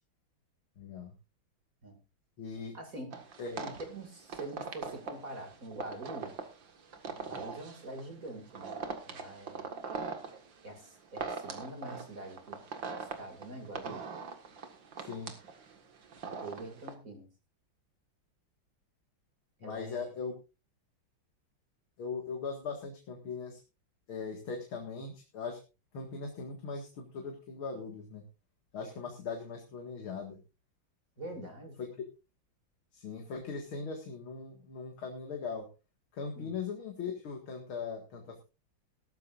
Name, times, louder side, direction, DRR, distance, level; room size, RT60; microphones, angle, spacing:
voice 1, 0.8-1.1 2.4-2.8 3.4-3.7 15.0-15.3 19.6-20.4 22.0-23.6 24.1-25.6 25.9-28.2 28.7-30.4 31.8-31.9 32.9-35.7 36.1-38.4, left 5 dB, 85° left, 2 dB, 2.8 m, -39 dB
voice 2, 2.7-3.2 3.6-6.4 7.0-8.8 9.0-9.7 10.6-12.6 13.0-14.0 16.4-17.3 19.6-20.1 31.2-31.8 36.4-36.6, right 2 dB, 40° right, 5 dB, 2.8 m, -44 dB
sound 1, 3.1-16.9, right 5 dB, 65° right, 2.5 m, -42 dB
18.0 x 13.5 x 2.6 m, 0.30 s
omnidirectional pair, 2.2 m